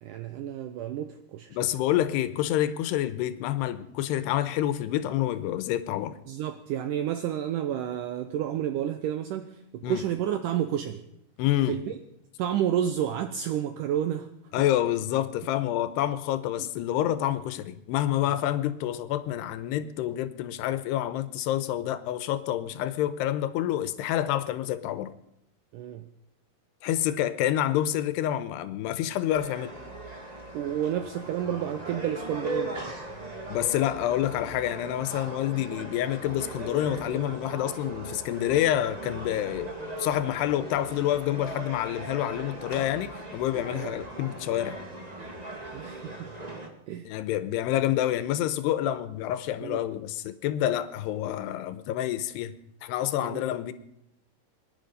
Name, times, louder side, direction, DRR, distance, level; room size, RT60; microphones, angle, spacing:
voice 1, 0.0-1.6 6.3-11.0 11.7-12.0 12.4-14.3 16.6-16.7 18.3-18.4 25.7-26.1 30.5-32.8 43.7-43.9 45.7-46.3 46.9-47.1 48.8-48.9 49.6-49.8 53.2-53.4, right 10 dB, 85° right, 1.8 m, -30 dB
voice 2, 1.5-6.2 9.8-10.0 11.4-11.8 14.5-25.1 26.8-29.7 33.5-39.7 40.0-44.8 47.1-52.5 52.8-53.7, left 12 dB, 90° left, 3.0 m, -28 dB
sound 1, 29.3-46.7, right 1 dB, 45° right, 0.5 m, -39 dB
25.0 x 11.0 x 5.4 m
omnidirectional pair, 4.7 m